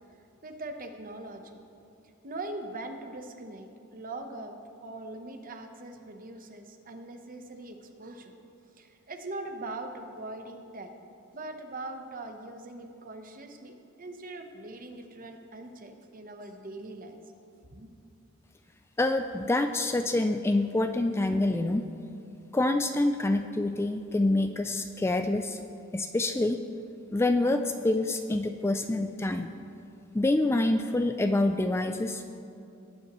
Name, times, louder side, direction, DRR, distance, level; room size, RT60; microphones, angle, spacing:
voice 1, 0.1-1.7 2.2-8.3 8.8-10.9 11.3-17.2 17.7-17.9, right 2 dB, 40° right, 5 dB, 0.9 m, -41 dB
voice 2, 19.0-21.9 22.5-25.6 25.9-26.6 27.1-29.5 30.1-32.4, left 2 dB, 10° left, 7 dB, 0.3 m, -26 dB
19.0 x 9.4 x 3.1 m, 2.6 s
head